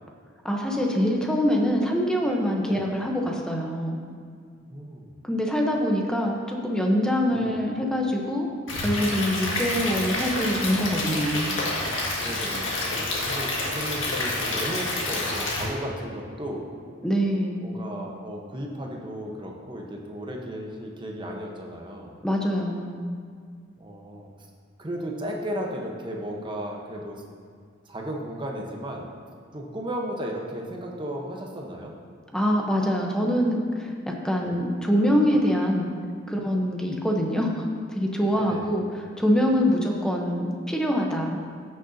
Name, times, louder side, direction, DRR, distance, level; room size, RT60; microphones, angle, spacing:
voice 1, 0.4-4.0 5.2-8.5 8.8-11.5 17.0-17.6 22.2-23.0 32.3-35.9 36.3-41.4, equal, 5° left, 0 dB, 0.8 m, -24 dB
voice 2, 4.7-5.1 7.3-7.6 12.2-16.7 17.6-22.1 23.8-24.3 24.8-27.2 27.9-29.1 29.5-31.9 34.4-34.5 38.4-38.7, equal, 25° right, 0 dB, 1.0 m, -35 dB
Stream / Liquid, 8.7-15.6, left 2 dB, 70° left, 1.9 m, -28 dB
13.5 x 6.5 x 2.8 m, 2.2 s
head